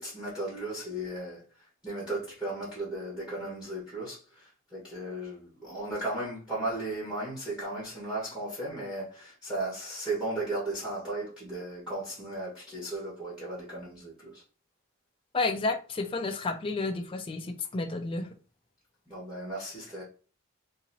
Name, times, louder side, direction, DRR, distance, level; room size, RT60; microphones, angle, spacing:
voice 1, 0.0-1.4 1.8-14.4 19.1-20.0, right 2 dB, 5° right, 1.4 m, -36 dB
voice 2, 15.3-18.3, left 3 dB, 25° left, 0.3 m, -31 dB
3.8 x 2.8 x 2.8 m
head